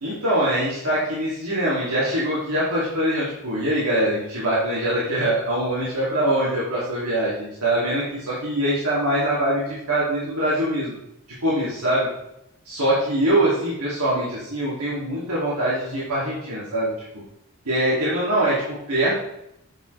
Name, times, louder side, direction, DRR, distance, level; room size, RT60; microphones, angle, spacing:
voice 1, 0.0-10.9 11.4-12.1 12.6-16.9 17.6-19.1, right 1 dB, 90° right, -8 dB, 2.7 m, -23 dB
8.0 x 7.1 x 3.3 m, 0.81 s
head